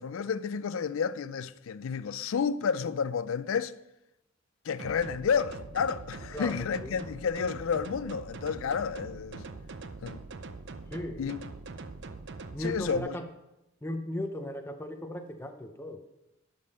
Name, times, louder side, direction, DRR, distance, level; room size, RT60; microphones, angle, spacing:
voice 1, 0.0-3.7 4.6-9.4 10.0-10.2 11.2-11.4 12.6-13.2, left 6 dB, 65° left, 0.4 m, -31 dB
sound 1, 4.8-13.0, right 3 dB, 55° right, 0.6 m, -43 dB
voice 2, 6.3-7.0 10.9-11.3 12.5-13.3 13.8-16.0, left 1 dB, 10° left, 0.5 m, -37 dB
12.0 x 5.2 x 5.5 m
head